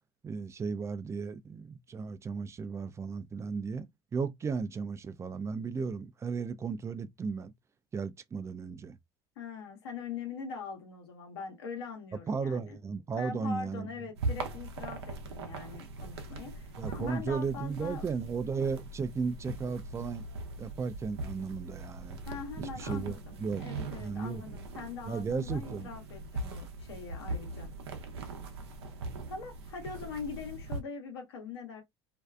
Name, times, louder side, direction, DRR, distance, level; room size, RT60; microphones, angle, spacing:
voice 1, 0.2-7.5 7.9-9.0 12.3-13.9 16.8-20.3 20.6-22.2 22.6-23.7 24.0-24.4 25.1-25.9, right 5 dB, 20° right, 0.3 m, -35 dB
voice 2, 9.4-12.8 13.2-18.0 22.3-27.7 29.3-31.8, left 5 dB, 85° left, 1.0 m, -42 dB
sound 1, 14.1-30.8, right 2 dB, 85° right, 0.6 m, -40 dB
2.5 x 2.3 x 2.2 m
hypercardioid pair, 80°, 13 cm